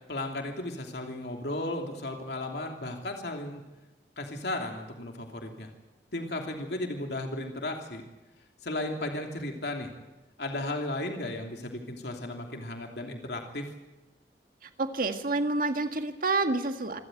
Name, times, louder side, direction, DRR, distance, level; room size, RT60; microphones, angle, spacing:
voice 1, 0.1-3.6 4.2-5.7 6.1-8.0 8.6-9.9 10.4-13.7, left 1 dB, 70° left, 2 dB, 3.0 m, -35 dB
voice 2, 14.6-17.0, right 3 dB, 50° right, 7 dB, 1.8 m, -28 dB
27.5 x 13.0 x 9.2 m, 1.0 s
head